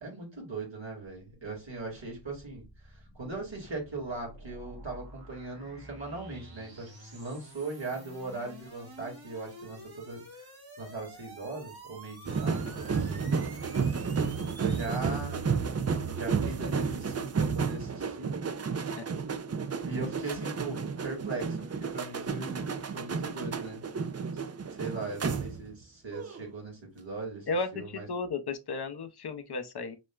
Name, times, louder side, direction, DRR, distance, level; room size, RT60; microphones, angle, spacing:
voice 1, 0.0-2.6 3.1-10.2 10.8-13.5 13.9-14.0 14.6-15.4 16.1-18.3 19.9-23.8 24.7-28.1, right 3 dB, 80° right, 2.3 m, -39 dB
sound 1, 1.6-15.0, right 1 dB, 55° right, 1.6 m, -50 dB
sound 2, 12.3-25.8 26.1-26.4, right 5 dB, 35° right, 0.4 m, -32 dB
voice 2, 27.5-30.0, left 3 dB, 60° left, 0.7 m, -34 dB
6.1 x 2.1 x 2.3 m
wide cardioid pair, 50°, 44 cm